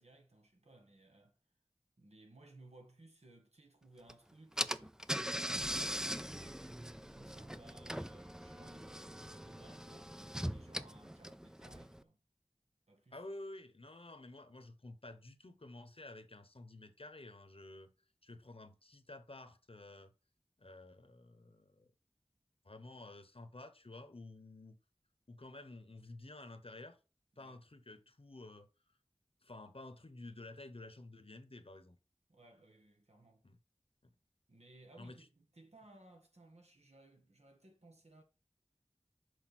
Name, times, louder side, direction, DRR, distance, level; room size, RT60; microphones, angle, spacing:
voice 1, 0.0-1.4 2.0-5.0 5.2-10.2 10.4-12.2 12.9-13.2 27.4-27.6 32.3-33.4 34.5-38.2, right 2 dB, 80° right, 1.8 m, -61 dB
Car / Engine, 4.1-4.2 4.6-12.0, equal, 5° right, 0.4 m, -41 dB
voice 2, 13.1-17.9 18.2-20.1 20.6-21.9 22.6-24.8 25.3-27.0 27.4-28.7 29.4-32.0 33.4-33.6 34.0-34.1 35.0-35.3, left 2 dB, 60° left, 0.9 m, -51 dB
6.4 x 4.8 x 6.0 m
wide cardioid pair, 45°, 11 cm